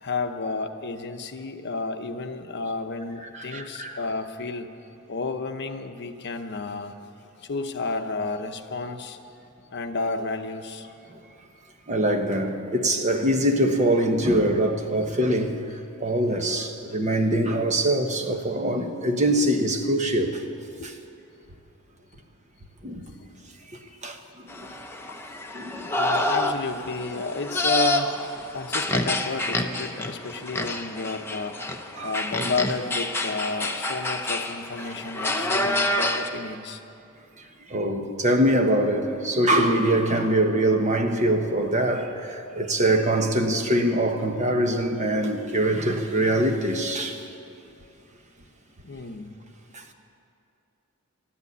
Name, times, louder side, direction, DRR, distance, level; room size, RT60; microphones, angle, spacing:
voice 1, 0.0-4.7 5.1-7.0 7.4-9.2 9.7-10.9 20.8-20.9 23.2-23.3 26.0-28.2 28.5-31.6 32.0-36.8 48.8-49.3, left 3 dB, 50° left, 7 dB, 0.8 m, -31 dB
voice 2, 3.3-4.0 11.9-15.6 16.0-20.4 20.8-20.9 22.8-23.0 24.0-24.2 24.5-24.7 25.5-25.9 32.0-32.1 35.6-35.7 37.7-47.2 49.7-49.8, right 1 dB, 35° right, 4 dB, 1.2 m, -23 dB
sound 1, 24.5-36.3, left 1 dB, 10° left, 0.7 m, -28 dB
13.5 x 11.0 x 9.4 m, 2.6 s
head